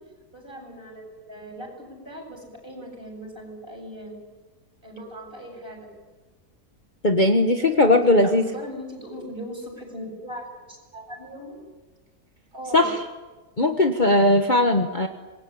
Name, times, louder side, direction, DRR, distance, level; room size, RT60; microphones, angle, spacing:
voice 1, 0.3-4.1 4.8-5.9 7.5-11.6 12.5-12.9, equal, 35° right, 2 dB, 8.3 m, -39 dB
voice 2, 7.0-8.4 12.7-13.0 13.6-15.1, left 1 dB, 30° left, 4 dB, 1.6 m, -18 dB
27.0 x 22.5 x 8.9 m, 1.2 s
omnidirectional pair, 1.7 m